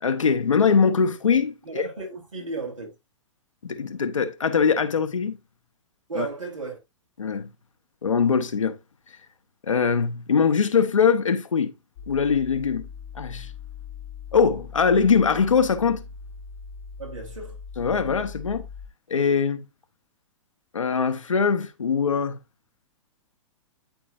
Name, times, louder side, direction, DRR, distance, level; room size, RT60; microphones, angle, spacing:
voice 1, 0.0-1.8 3.6-5.4 6.2-6.3 7.2-7.5 8.0-8.8 9.6-11.7 12.1-12.9 13.1-13.5 14.3-16.0 17.8-18.7 19.1-19.6 20.7-22.4, left 6 dB, 85° left, 1.0 m, -22 dB
voice 2, 1.6-2.9 6.1-6.8 17.0-17.6, right 3 dB, 85° right, 3.4 m, -34 dB
sound 1, 12.0-18.9, left 5 dB, 55° left, 1.1 m, -41 dB
11.5 x 4.0 x 2.6 m
hypercardioid pair, 115°, 16 cm